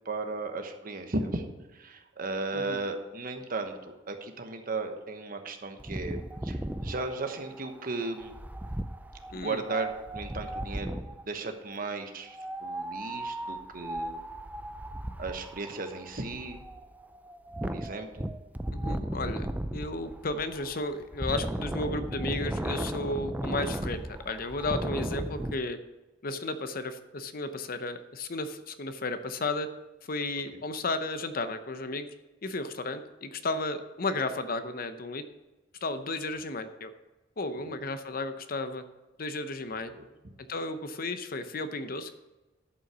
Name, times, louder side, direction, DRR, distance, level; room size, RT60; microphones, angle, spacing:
voice 1, 0.0-8.3 9.3-11.0 11.2-14.2 15.2-16.6 17.6-18.2 30.5-30.6 37.6-37.8 39.7-40.0, right 3 dB, 50° right, 5 dB, 1.1 m, -36 dB
Wind, 5.8-11.2 12.3-25.5, right 1 dB, 10° right, 0.4 m, -36 dB
voice 2, 18.7-19.5 19.7-25.8 26.2-29.7 30.0-32.1 32.4-35.2 35.8-36.9 37.4-38.8 39.2-39.9 40.5-42.1, left 2 dB, 50° left, 10 dB, 0.7 m, -33 dB
11.0 x 5.7 x 6.1 m, 1.1 s
head